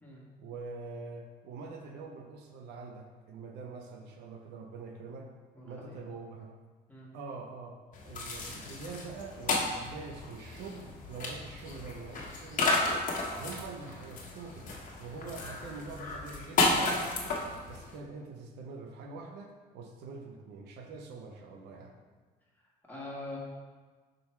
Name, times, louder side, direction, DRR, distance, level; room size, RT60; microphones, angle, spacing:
voice 1, 0.4-5.3 5.6-6.5 7.1-12.9 13.4-17.4 17.7-22.0, right 4 dB, 80° right, 2 dB, 0.8 m, -44 dB
voice 2, 5.5-6.0 6.9-7.1 22.9-23.4, left 2 dB, 10° left, -5 dB, 1.6 m, -43 dB
sound 1, 7.9-18.0, left 3 dB, 50° left, 1.2 m, -33 dB
5.4 x 3.8 x 4.5 m, 1.4 s
cardioid pair, 110°, 17 cm